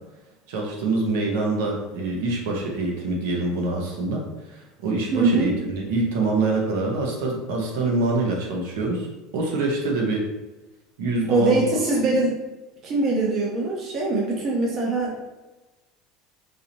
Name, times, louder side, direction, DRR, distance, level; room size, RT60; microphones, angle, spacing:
voice 1, 0.5-9.1 9.3-10.3 11.0-11.6, right 2 dB, 75° right, 0 dB, 1.0 m, -25 dB
voice 2, 5.1-5.5 11.3-12.3 12.8-15.2, right 3 dB, 30° right, -2 dB, 0.7 m, -22 dB
4.9 x 2.7 x 2.9 m, 1.1 s
cardioid pair, 175°, 0 cm